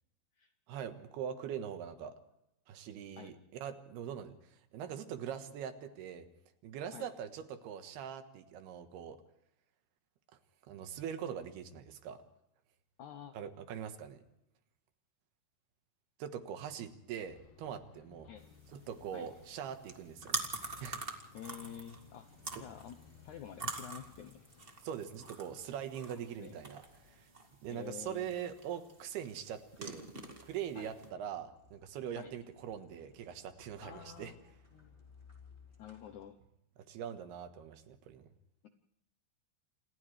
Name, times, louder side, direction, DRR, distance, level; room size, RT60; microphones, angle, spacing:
voice 1, 0.7-2.2 2.7-6.3 6.6-9.2 10.7-12.2 13.4-14.2 16.2-18.3 18.7-21.0 22.5-22.6 24.8-27.3 27.6-30.1 30.4-34.3 36.9-38.3, right 8 dB, 80° right, 8 dB, 3.4 m, -42 dB
voice 2, 13.0-13.3 18.2-18.4 19.1-19.3 21.3-22.3 22.6-23.0 23.2-24.4 26.0-26.6 27.7-28.3 30.8-30.9 32.2-32.3 33.8-34.4 34.7-34.9 35.8-36.4, left 9 dB, 75° left, 8 dB, 1.7 m, -49 dB
Bus, 17.3-27.3, left 6 dB, 60° left, 2.1 m, -61 dB
sound 1, 18.4-31.1, right 3 dB, 50° right, 0.6 m, -45 dB
sound 2, 20.6-36.3, left 4 dB, 10° left, 3.8 m, -64 dB
29.0 x 27.0 x 3.3 m, 0.83 s
omnidirectional pair, 4.6 m